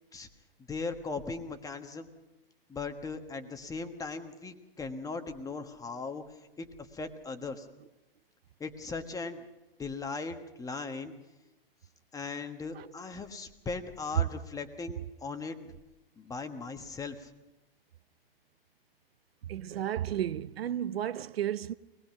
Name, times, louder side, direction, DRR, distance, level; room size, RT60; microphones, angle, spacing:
voice 1, 0.7-2.1 2.7-7.7 8.6-9.4 9.8-11.1 12.1-15.6 16.2-17.3, left 4 dB, 10° left, 1.4 m, -38 dB
voice 2, 19.4-21.7, right 11 dB, 80° right, 0.7 m, -32 dB
24.0 x 19.5 x 5.9 m
hypercardioid pair, 130°, 30 cm